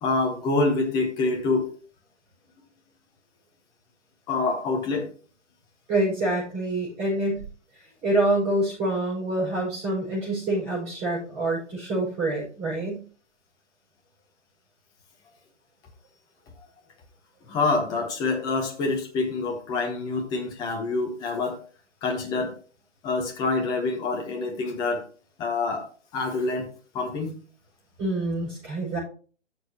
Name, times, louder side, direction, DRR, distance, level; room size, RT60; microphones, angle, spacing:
voice 1, 0.0-1.7 4.3-5.1 17.5-21.6 22.0-22.5 23.0-25.0 25.4-25.8 26.1-26.7 26.9-27.3, left 3 dB, 10° left, 2 dB, 1.0 m, -26 dB
voice 2, 5.9-7.4 7.7-13.0 28.0-29.0, right 1 dB, 20° right, -8 dB, 5.6 m, -26 dB
13.0 x 6.6 x 2.9 m, 0.41 s
figure-of-eight pair, 140°, 36 cm